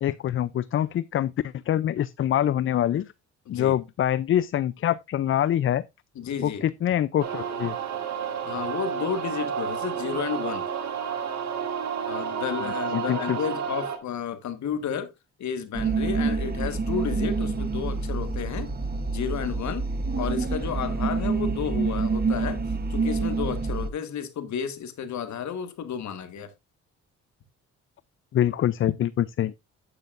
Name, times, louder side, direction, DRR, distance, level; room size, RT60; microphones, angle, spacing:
voice 1, 0.0-3.1 3.5-5.8 6.4-7.8 12.6-13.4 28.3-29.5, left 11 dB, 45° left, 0.4 m, -25 dB
voice 2, 3.5-3.8 6.1-6.6 8.5-10.6 12.1-15.1 15.4-18.7 19.1-19.8 20.2-22.6 22.9-26.5, left 7 dB, 65° left, 1.6 m, -32 dB
sound 1, 7.2-14.0, right 7 dB, 60° right, 1.9 m, -31 dB
sound 2, 15.7-23.9, right 4 dB, 30° right, 1.0 m, -27 dB
9.5 x 9.0 x 2.5 m
cardioid pair, 90°, 30 cm